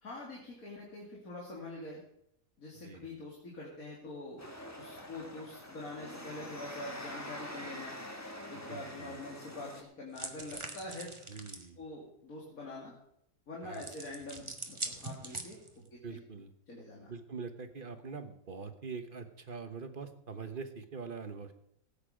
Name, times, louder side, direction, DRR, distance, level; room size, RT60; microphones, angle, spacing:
voice 1, 0.0-2.0 2.6-4.5 4.8-8.0 8.5-11.1 11.8-12.9 13.5-15.6 15.9-16.2 16.7-17.1, left 2 dB, 80° left, -3 dB, 3.0 m, -45 dB
voice 2, 2.7-3.1 8.5-9.2 11.3-11.8 13.6-13.9 16.0-16.5 17.1-21.5, right 5 dB, 40° right, 9 dB, 1.2 m, -44 dB
sound 1, 4.4-9.8, left 1 dB, 10° left, 1.5 m, -45 dB
sound 2, 10.1-11.7 13.7-15.9, right 2 dB, 20° right, 1.4 m, -43 dB
18.0 x 8.9 x 5.0 m, 0.76 s
omnidirectional pair, 1.5 m